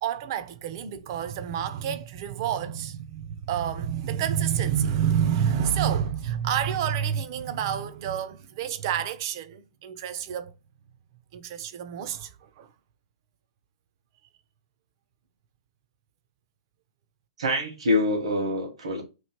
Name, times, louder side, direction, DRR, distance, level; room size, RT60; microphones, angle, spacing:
voice 1, 0.0-10.6 11.3-12.7, right 9 dB, 50° right, 0.6 m, -28 dB
voice 2, 17.4-19.0, left 1 dB, 85° right, 1.4 m, -25 dB
3.1 x 2.7 x 4.4 m
hypercardioid pair, 135°, 3 cm